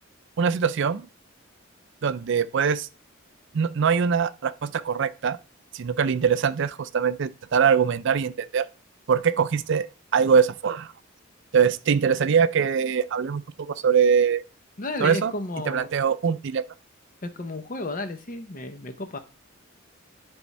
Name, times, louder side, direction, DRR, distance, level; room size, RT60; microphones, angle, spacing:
voice 1, 0.4-1.0 2.0-2.9 3.5-5.4 5.7-8.7 9.1-9.9 10.1-10.9 11.5-14.4 15.0-15.3 15.7-16.6, right 6 dB, 60° right, 0.4 m, -22 dB
voice 2, 14.8-15.9 17.2-19.2, left 2 dB, 40° left, 0.7 m, -33 dB
10.5 x 3.5 x 4.1 m
head